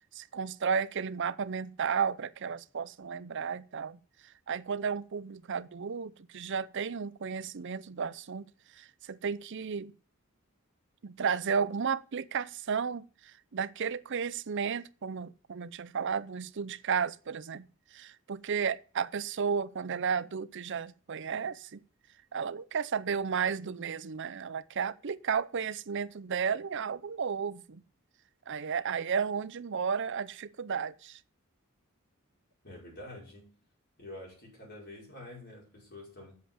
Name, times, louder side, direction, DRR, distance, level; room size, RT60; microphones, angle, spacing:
voice 1, 0.1-4.0 4.5-8.5 8.8-9.9 11.0-17.7 17.9-21.8 22.3-27.8 28.5-31.2, right 6 dB, 60° right, 0.6 m, -33 dB
voice 2, 32.6-33.5 34.0-36.4, left 1 dB, 50° left, 5.6 m, -47 dB
8.5 x 7.6 x 7.3 m
head